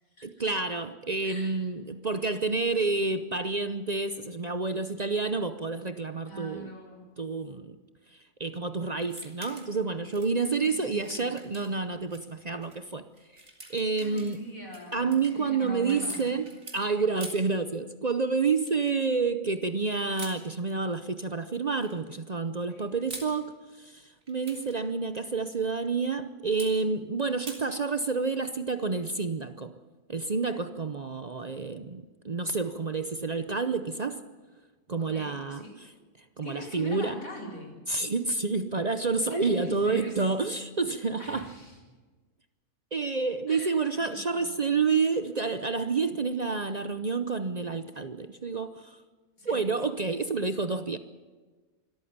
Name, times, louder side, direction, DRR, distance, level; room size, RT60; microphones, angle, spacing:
voice 1, 0.2-6.7 7.2-7.8 8.4-13.0 13.7-14.4 14.9-29.7 30.1-34.2 34.9-35.6 36.4-37.2 37.9-41.5 42.9-49.0 49.4-51.0, right 4 dB, 40° right, 0.7 m, -29 dB
voice 2, 1.2-1.6 6.3-7.1 10.6-11.3 14.0-16.2 22.7-22.9 35.0-35.8 36.4-37.8 39.2-40.2 41.2-41.8 43.5-44.5 49.4-49.6, equal, 90° left, 5.1 m, -42 dB
sound 1, 9.1-9.8 10.1-12.2 12.6-12.8 13.2-16.8 17.2-17.6 18.7-19.0 20.1-20.4 21.5-22.0 22.8-23.4 24.2-24.8 26.6-26.7 27.5-27.6, right 2 dB, 55° right, 3.3 m, -46 dB
25.0 x 14.0 x 8.8 m
omnidirectional pair, 1.4 m